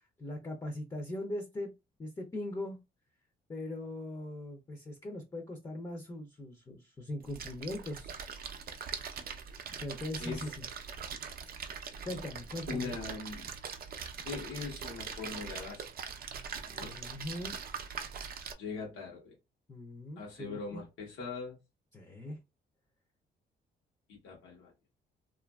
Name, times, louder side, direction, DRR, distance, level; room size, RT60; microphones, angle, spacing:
voice 1, 0.2-1.7 2.0-2.8 3.5-8.2 9.5-10.7 12.0-12.9 16.8-17.6 19.7-20.8 21.9-22.4, left 1 dB, 20° left, 0.5 m, -40 dB
Splash splatter, 7.2-18.5, right 6 dB, 50° right, 0.5 m, -42 dB
voice 2, 10.2-10.5 12.7-13.5 14.2-15.9 16.6-17.0 18.6-19.3 20.2-21.6 24.1-24.7, left 4 dB, 85° left, 0.9 m, -41 dB
2.7 x 2.4 x 2.2 m
cardioid pair, 90°, 20 cm